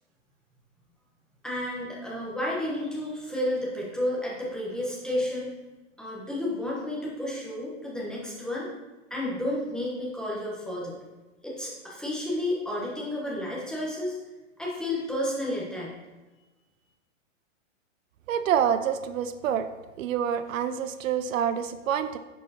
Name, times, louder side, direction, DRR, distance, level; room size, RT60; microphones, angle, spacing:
voice 1, 1.4-5.5 6.0-8.7 9.1-11.0 11.4-14.2 14.6-15.9, left 1 dB, ahead, -5 dB, 0.9 m, -31 dB
voice 2, 18.3-19.7 20.0-22.2, right 9 dB, 80° right, 11 dB, 0.6 m, -27 dB
10.0 x 4.6 x 2.8 m, 1.2 s
hypercardioid pair, 155°, 39 cm